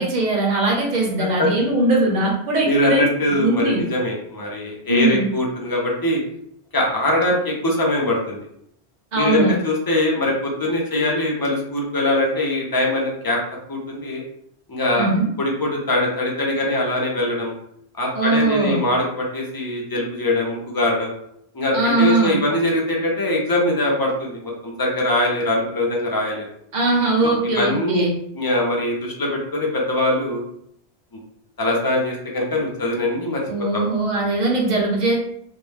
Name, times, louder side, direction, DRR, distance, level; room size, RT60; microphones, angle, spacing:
voice 1, 0.0-3.1 3.4-3.8 4.9-5.3 9.1-9.5 15.0-15.3 18.1-18.8 21.7-22.3 26.7-28.1 33.5-35.2, right 2 dB, 45° right, -2 dB, 0.8 m, -20 dB
voice 2, 2.6-6.2 6.7-8.4 9.1-13.4 13.7-14.2 14.7-15.1 15.4-17.5 18.0-21.1 21.5-26.5 27.2-28.1 28.3-30.4 31.6-33.4 33.7-33.8, left 1 dB, 30° left, -1 dB, 0.4 m, -22 dB
2.5 x 2.1 x 3.2 m, 0.71 s
omnidirectional pair, 1.1 m